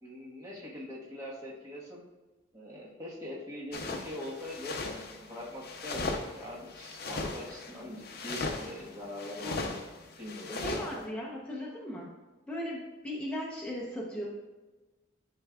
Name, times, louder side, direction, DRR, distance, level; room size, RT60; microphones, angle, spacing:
voice 1, 0.0-2.0 2.5-9.7 10.2-11.3, left 1 dB, 15° right, -6 dB, 1.2 m, -42 dB
sound 1, 3.7-11.0, left 3 dB, 50° left, 0.6 m, -38 dB
voice 2, 10.6-12.1 12.5-14.2, equal, 5° left, -5 dB, 0.7 m, -37 dB
10.5 x 4.5 x 2.3 m, 1.2 s
head